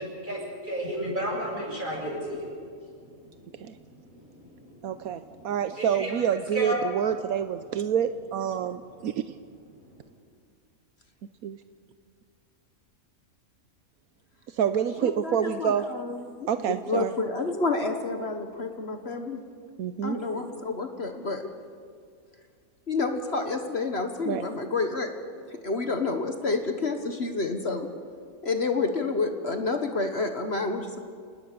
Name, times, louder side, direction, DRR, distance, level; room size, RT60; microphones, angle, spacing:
voice 1, 0.0-2.5 3.1-5.5 5.8-6.9, equal, 35° right, -2 dB, 7.0 m, -34 dB
voice 2, 4.8-9.3 11.4-11.6 14.5-15.9 16.5-17.1 19.8-20.2 24.3-24.5, right 8 dB, 80° right, 11 dB, 1.2 m, -27 dB
voice 3, 15.0-19.4 20.0-21.5 22.9-25.1 25.5-27.9 28.4-31.0, left 3 dB, 50° left, 6 dB, 1.6 m, -29 dB
29.0 x 19.0 x 6.8 m, 2.2 s
omnidirectional pair, 1.5 m